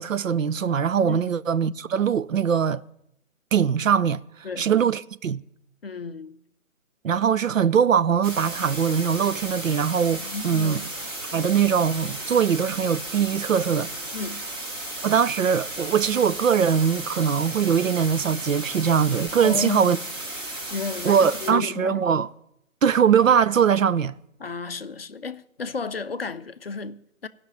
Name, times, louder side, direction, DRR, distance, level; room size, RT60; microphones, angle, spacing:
voice 1, 0.0-2.8 3.5-4.2 4.6-5.4 7.0-10.8 11.3-13.9 15.0-20.0 21.0-22.3 22.8-24.1, right 7 dB, 70° right, 0.6 m, -21 dB
voice 2, 5.8-6.4 10.2-10.9 14.1-14.5 19.4-19.9 20.7-22.0 24.4-27.3, left 4 dB, 45° left, 0.5 m, -33 dB
sound 1, 8.2-21.5, right 1 dB, 15° right, 1.3 m, -34 dB
15.5 x 5.9 x 9.2 m
figure-of-eight pair, 150°, 41 cm